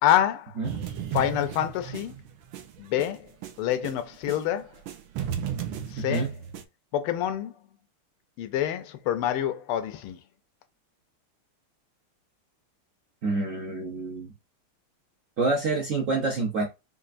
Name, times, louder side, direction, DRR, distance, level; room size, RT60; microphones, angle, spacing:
voice 1, 0.0-0.5 1.1-2.1 2.8-3.3 3.6-4.7 5.9-6.3 6.9-7.5 8.4-10.2, left 11 dB, 80° left, 1.5 m, -26 dB
sound 1, 0.6-4.4 4.7-6.6, right 9 dB, 85° right, 1.5 m, -35 dB
voice 2, 6.0-6.3 13.2-14.3 15.4-16.6, right 3 dB, 60° right, 0.8 m, -27 dB
5.4 x 2.4 x 2.5 m
omnidirectional pair, 2.4 m